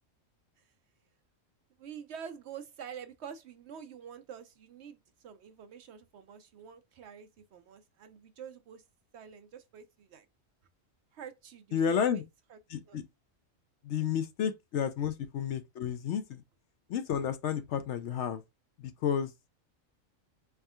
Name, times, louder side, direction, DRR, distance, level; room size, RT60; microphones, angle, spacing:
voice 1, 1.8-8.8 9.1-10.3 11.1-12.2 12.5-13.0, right 7 dB, 65° right, 0.8 m, -47 dB
voice 2, 11.7-12.2 12.7-13.0 13.8-16.4 16.9-18.4 18.8-19.3, left 8 dB, 70° left, 0.8 m, -31 dB
4.2 x 3.6 x 2.3 m
omnidirectional pair, 1.4 m